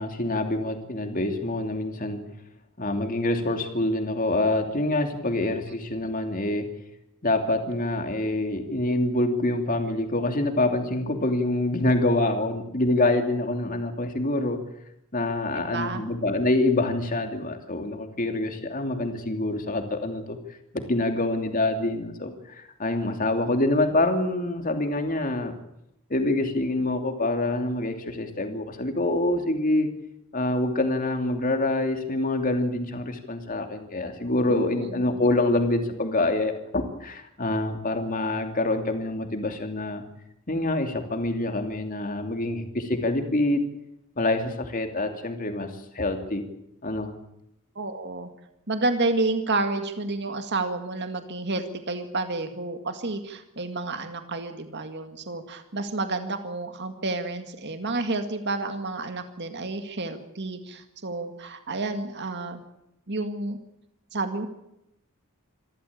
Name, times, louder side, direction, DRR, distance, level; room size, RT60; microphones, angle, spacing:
voice 1, 0.0-2.2 2.8-6.7 7.2-14.6 15.1-20.4 20.7-25.6 26.1-29.9 30.3-40.0 40.5-43.6 44.2-45.7 45.9-46.4 46.8-47.1, left 2 dB, 40° left, 5 dB, 2.9 m, -26 dB
voice 2, 15.5-16.0 34.5-35.0 47.8-48.3 48.7-62.6 63.1-63.6 64.1-64.5, right 2 dB, 55° right, 7 dB, 2.0 m, -30 dB
26.5 x 14.0 x 8.6 m, 0.82 s
head